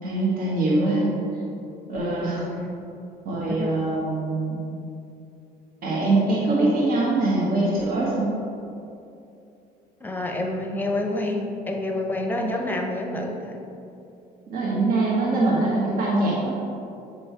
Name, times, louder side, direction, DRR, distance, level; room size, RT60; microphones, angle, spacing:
voice 1, 0.0-1.2 1.9-2.4 3.2-4.6 5.8-8.4 14.5-16.5, right 2 dB, 60° right, -5 dB, 1.2 m, -23 dB
voice 2, 2.3-2.8 3.5-3.8 10.0-13.6, left 1 dB, 10° left, 2 dB, 0.7 m, -28 dB
7.6 x 3.2 x 4.3 m, 2.7 s
cardioid pair, 110°, 17 cm